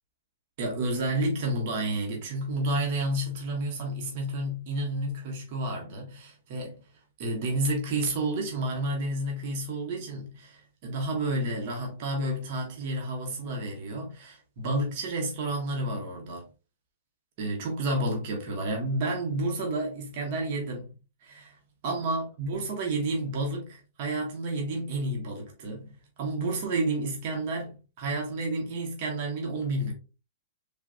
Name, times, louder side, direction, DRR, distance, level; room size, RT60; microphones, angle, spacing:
voice 1, 0.6-6.8 7.2-16.5 17.4-20.9 21.2-21.5 21.8-29.9, right 2 dB, 50° right, 1.0 m, -30 dB
3.5 x 2.5 x 2.5 m
hypercardioid pair, 145°, 0 cm